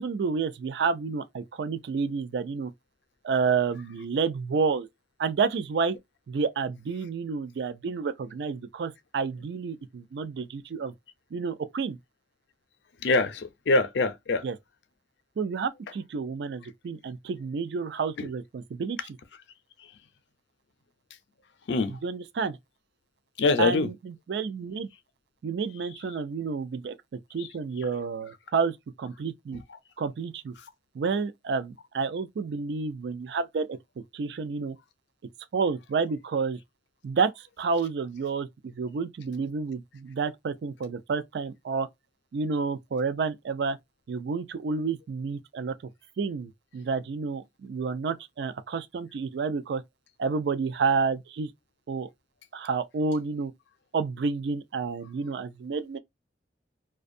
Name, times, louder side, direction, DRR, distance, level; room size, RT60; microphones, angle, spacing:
voice 1, 0.0-2.7 3.2-4.9 5.2-6.0 6.3-10.9 11.3-12.0 14.4-14.5 15.4-19.0 22.0-22.6 23.6-24.9 25.4-27.0 27.3-29.6 30.0-30.5 30.9-33.8 34.1-34.8 35.5-36.6 37.0-41.9 42.3-43.8 44.1-45.8 46.2-49.8 50.2-51.5 51.9-52.1 52.5-53.5 53.9-56.0, right 5 dB, 70° right, 0.4 m, -30 dB
voice 2, 13.0-14.5 18.2-18.3 19.8-19.9 21.7-22.0 23.4-23.9 27.4-27.5, left 3 dB, 80° left, 0.5 m, -24 dB
2.5 x 2.2 x 2.5 m
head